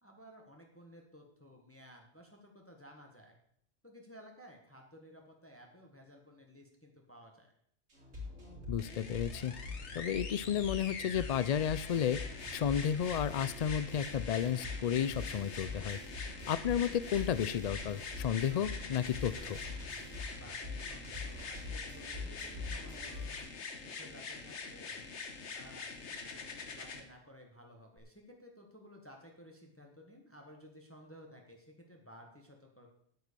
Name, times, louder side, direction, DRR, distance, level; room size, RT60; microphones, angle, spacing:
voice 1, 0.0-3.4 3.8-7.5 20.4-23.4 23.8-25.0 25.5-32.9, equal, 10° left, 2 dB, 1.5 m, -56 dB
sound 1, 7.9-23.4, left 3 dB, 75° right, 3.4 m, -44 dB
voice 2, 8.7-9.5 9.9-12.2 12.5-16.0 16.5-19.6, left 9 dB, 80° left, 16 dB, 0.3 m, -32 dB
sound 2, 8.8-27.0 28.0-28.1, left 4 dB, 65° left, 1.5 m, -45 dB
8.8 x 8.1 x 6.8 m, 0.67 s
omnidirectional pair, 1.3 m